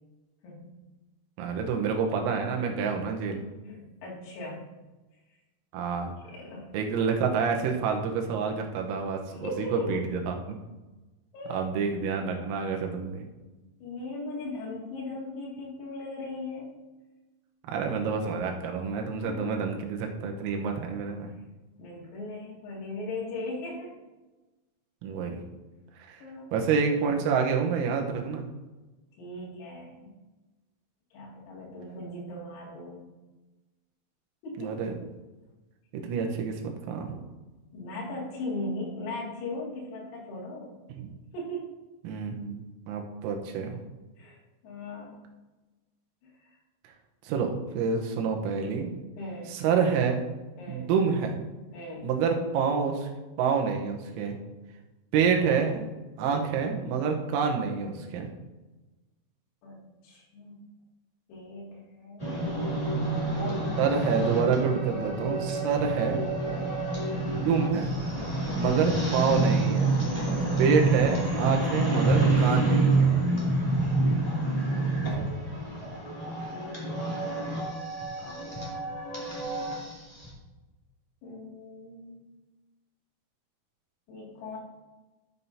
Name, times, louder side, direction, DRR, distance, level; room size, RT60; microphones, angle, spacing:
voice 1, 1.4-3.4 5.7-6.1 6.7-10.6 11.5-13.2 17.7-21.3 25.0-25.4 26.1-26.2 26.5-28.5 34.6-34.9 35.9-37.2 40.9-41.1 42.1-43.8 47.2-48.9 49.5-50.2 50.7-51.4 52.0-53.1 53.4-54.4 55.1-55.9 56.2-58.3 62.3-62.4 63.8-66.2 67.3-67.9 68.6-70.0 70.6-73.1, right 6 dB, 85° right, 2 dB, 3.7 m, -28 dB
voice 2, 3.6-4.7 6.2-6.8 9.3-10.0 11.3-11.6 13.8-16.7 19.3-19.6 21.8-24.0 26.2-26.6 29.2-30.1 31.1-33.1 34.4-34.7 37.7-40.8 41.3-41.8 44.2-45.2 46.2-46.6 49.2-49.6 50.6-50.9 51.7-52.1 56.2-56.5 59.6-60.6 61.3-62.4 63.3-63.9 66.4-66.9 68.3-68.7 70.4-70.7 74.7-77.2 78.2-78.9 81.2-82.2 84.1-84.6, left 2 dB, 85° left, -5 dB, 5.1 m, -39 dB
sound 1, 62.2-80.3, right 2 dB, 25° left, 0.8 m, -28 dB
13.0 x 7.3 x 2.7 m, 1.1 s
omnidirectional pair, 6.0 m